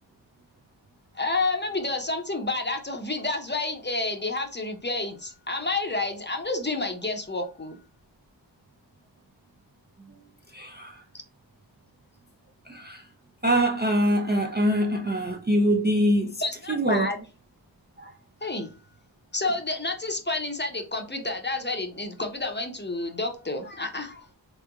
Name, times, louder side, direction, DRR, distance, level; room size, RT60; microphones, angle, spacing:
voice 1, 1.1-7.8 16.4-17.2 18.4-18.7 19.3-24.2, left 2 dB, 25° left, 0.7 m, -29 dB
voice 2, 10.5-10.9 12.7-13.0 13.4-16.3 16.7-17.1 18.0-18.1, equal, 25° right, 0.4 m, -24 dB
3.3 x 3.0 x 2.3 m
wide cardioid pair, 45°, 45 cm